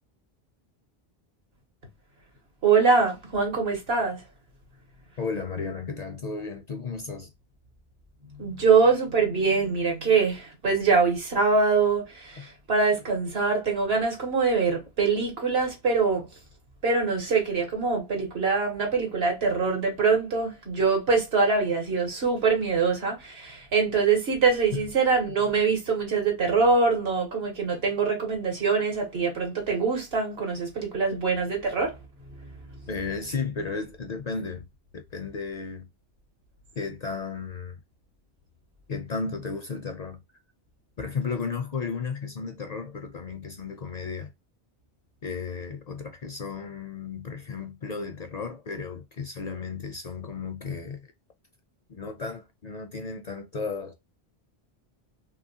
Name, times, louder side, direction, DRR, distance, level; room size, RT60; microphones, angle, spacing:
voice 1, 2.6-4.2 8.4-16.3 16.8-32.0, right 4 dB, 75° right, 1.5 m, -24 dB
voice 2, 5.2-7.3 12.4-12.5 24.7-24.8 32.9-34.7 34.9-35.9 36.8-37.8 38.9-40.2 41.0-44.3 45.2-51.1 51.9-53.9, left 5 dB, 55° left, 0.5 m, -34 dB
2.9 x 2.9 x 2.7 m
omnidirectional pair, 1.1 m